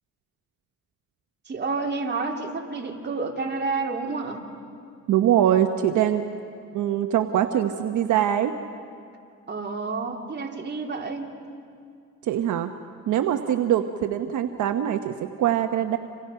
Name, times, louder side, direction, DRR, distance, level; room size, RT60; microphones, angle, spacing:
voice 1, 1.4-4.4 9.5-11.3, right 4 dB, 35° right, 1 dB, 3.1 m, -29 dB
voice 2, 5.1-6.2 6.7-8.5 12.2-12.7 13.1-16.0, right 10 dB, 80° right, 7 dB, 1.1 m, -23 dB
30.0 x 27.0 x 5.7 m, 2.3 s
cardioid pair, 90°, 30 cm